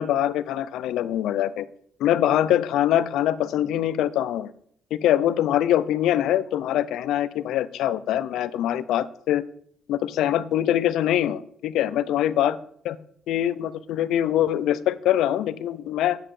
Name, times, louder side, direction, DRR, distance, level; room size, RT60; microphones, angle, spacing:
voice 1, 0.0-1.7 2.0-4.5 4.9-9.4 9.9-12.6 12.8-13.0 13.3-16.2, left 11 dB, 85° left, 15 dB, 0.5 m, -23 dB
8.9 x 7.8 x 4.8 m, 0.64 s
cardioid pair, 90°, 0 cm